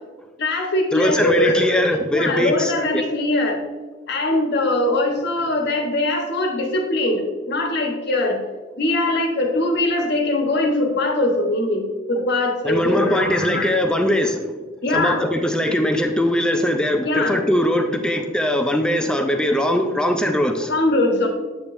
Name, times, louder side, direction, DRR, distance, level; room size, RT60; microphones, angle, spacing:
voice 1, 0.4-3.6 4.1-8.4 8.8-13.8 14.8-15.2 17.0-17.4 20.7-21.3, left 2 dB, 60° left, 2 dB, 1.2 m, -21 dB
voice 2, 0.9-3.0 12.6-14.5 14.9-20.7, equal, 5° left, 5 dB, 0.4 m, -21 dB
8.3 x 6.8 x 2.6 m, 1.3 s
head